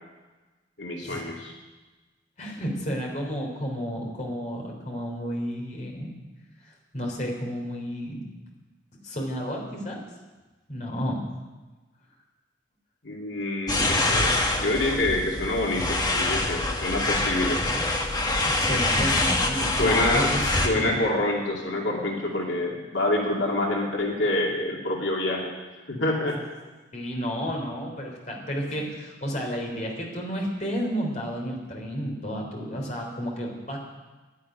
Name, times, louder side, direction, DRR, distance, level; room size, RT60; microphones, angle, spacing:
voice 1, 0.8-1.5 13.0-17.6 19.7-25.5 25.9-26.4, left 2 dB, 85° left, -1 dB, 2.7 m, -27 dB
voice 2, 2.4-6.1 6.6-8.3 9.0-10.0 10.7-11.2 18.2-21.0 26.9-33.8, equal, 40° left, 0 dB, 3.4 m, -31 dB
sound 1, 13.7-20.7, left 2 dB, 20° left, 1.3 m, -25 dB
11.0 x 11.0 x 9.9 m, 1.2 s
head